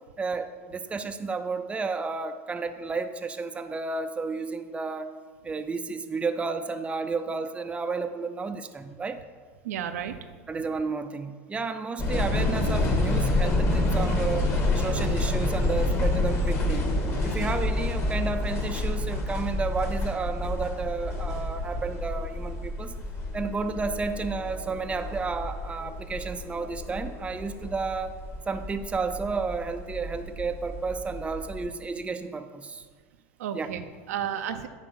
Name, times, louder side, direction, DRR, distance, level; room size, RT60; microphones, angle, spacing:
voice 1, 0.2-5.1 5.4-9.2 10.5-16.9 17.2-23.0 23.3-28.2 28.5-32.8 33.5-33.7, right 4 dB, 15° right, 8 dB, 0.5 m, -32 dB
voice 2, 9.6-10.2 33.4-34.7, right 9 dB, 85° right, 7 dB, 0.6 m, -32 dB
sound 1, 12.0-31.6, left 2 dB, 30° left, 1.7 m, -28 dB
9.8 x 3.7 x 6.2 m, 1.5 s
hypercardioid pair, 100°, 8 cm